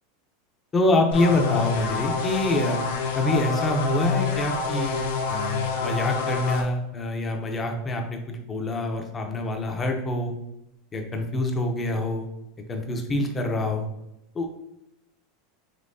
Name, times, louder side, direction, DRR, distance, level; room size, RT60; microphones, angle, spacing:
voice 1, 0.7-2.8 3.2-5.0 5.3-10.3 10.9-12.3 12.7-13.9 14.3-14.5, left 2 dB, 15° left, 3 dB, 0.5 m, -26 dB
sound 1, 1.1-6.6, left 5 dB, 80° left, 0.8 m, -27 dB
5.2 x 3.0 x 2.6 m, 0.86 s
supercardioid pair, 165°, 0 cm